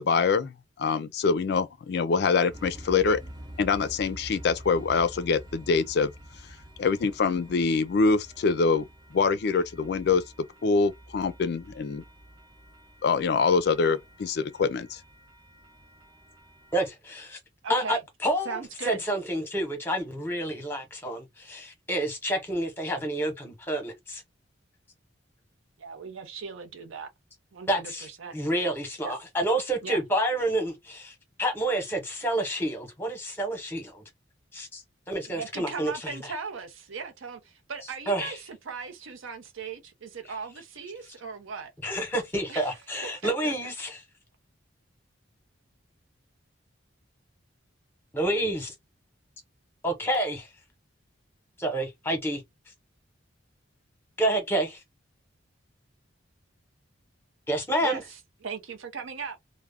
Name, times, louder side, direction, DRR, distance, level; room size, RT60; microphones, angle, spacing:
voice 1, 0.0-3.2 3.6-6.1 6.8-8.9 9.1-10.2 10.6-12.0 13.0-15.0, left 4 dB, 55° left, 0.3 m, -24 dB
sound 1, 2.5-16.9, equal, 20° right, 0.5 m, -48 dB
voice 2, 16.7-17.4 17.7-24.2 27.7-28.1 28.3-34.0 34.5-36.2 38.1-38.4 41.8-44.0 48.1-48.7 49.8-50.5 51.6-52.4 54.2-54.8 57.5-58.0, right 1 dB, 10° left, 0.9 m, -29 dB
voice 3, 17.6-18.0 18.4-19.0 25.8-27.1 27.5-28.4 29.0-29.1 29.8-30.0 35.3-41.7 42.5-42.8 43.0-43.5 57.8-59.4, right 5 dB, 85° right, 0.6 m, -38 dB
2.3 x 2.1 x 3.3 m
head